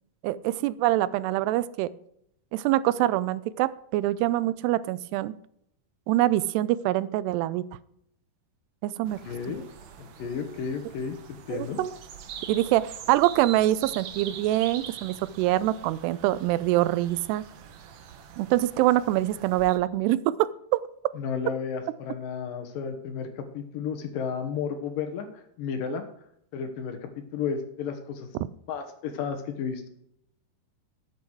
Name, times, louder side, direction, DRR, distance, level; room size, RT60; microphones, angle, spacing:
voice 1, 0.2-1.9 2.5-5.4 6.1-7.6 8.8-9.2 11.5-11.9 12.5-17.4 18.4-20.5 25.9-26.0, right 15 dB, 90° right, 17 dB, 2.7 m, -25 dB
sound 1, 9.1-19.8, right 8 dB, 65° right, 1.8 m, -44 dB
voice 2, 9.2-9.6 10.0-11.8 21.2-26.1 26.5-28.3 28.7-29.9, left 6 dB, 70° left, 7 dB, 2.5 m, -33 dB
13.0 x 7.9 x 4.6 m, 0.74 s
omnidirectional pair, 4.6 m